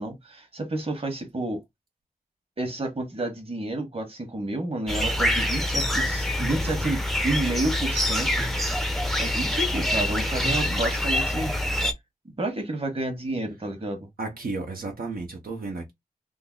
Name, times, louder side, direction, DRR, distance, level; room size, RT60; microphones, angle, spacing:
voice 1, 0.0-1.6 2.6-8.5 9.2-11.5 12.4-14.1, right 2 dB, 40° right, 1.4 m, -30 dB
sound 1, 4.9-11.9, left 1 dB, ahead, 0.6 m, -25 dB
voice 2, 14.2-15.9, right 3 dB, 80° right, 1.0 m, -33 dB
3.7 x 2.0 x 3.8 m
wide cardioid pair, 100°, 15 cm